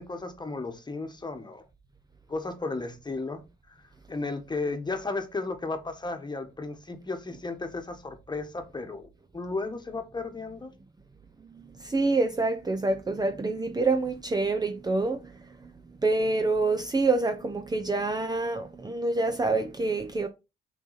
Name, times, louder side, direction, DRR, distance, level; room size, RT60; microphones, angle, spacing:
voice 1, 0.0-1.6 2.3-3.4 4.1-9.1 9.3-10.7, left 3 dB, 20° left, 1.4 m, -34 dB
voice 2, 11.5-15.3 15.6-15.7 16.0-20.3, right 3 dB, 20° right, 0.7 m, -27 dB
6.0 x 4.0 x 4.1 m
cardioid pair, 90°, 20 cm